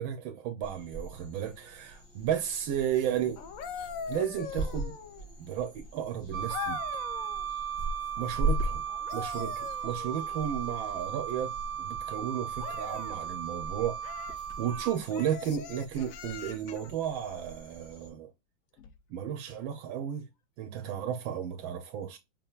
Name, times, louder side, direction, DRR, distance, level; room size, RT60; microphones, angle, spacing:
voice 1, 0.0-3.4 3.7-5.0 5.4-7.0 8.2-8.8 9.1-14.0 14.6-18.3 19.1-20.3 20.6-22.2, right 9 dB, 80° right, 1.4 m, -33 dB
sound 1, 0.6-18.1, right 2 dB, 50° left, 2.5 m, -40 dB
sound 2, 3.4-5.4 6.5-7.5 8.9-10.5 12.6-13.2 14.0-14.4 15.1-16.9 18.8-19.0, left 7 dB, 80° left, 0.7 m, -41 dB
Wind instrument woodwind instrument, 6.3-15.0, right 9 dB, 55° right, 1.1 m, -36 dB
5.5 x 3.6 x 2.3 m
omnidirectional pair, 2.2 m